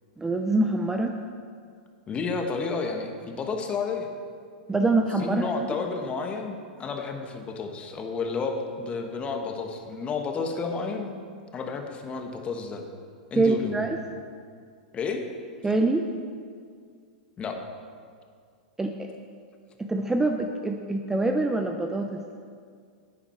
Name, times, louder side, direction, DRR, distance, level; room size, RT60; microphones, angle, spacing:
voice 1, 0.2-1.1 4.7-5.7 13.4-14.0 15.6-16.1 18.8-19.1 19.8-22.2, right 2 dB, 10° right, 4 dB, 0.6 m, -25 dB
voice 2, 2.1-4.1 5.2-11.1 11.5-12.8 13.3-13.8 14.9-15.2 17.4-17.6, left 4 dB, 25° left, 4 dB, 1.3 m, -31 dB
10.5 x 9.6 x 4.5 m, 2.1 s
hypercardioid pair, 115°, 5 cm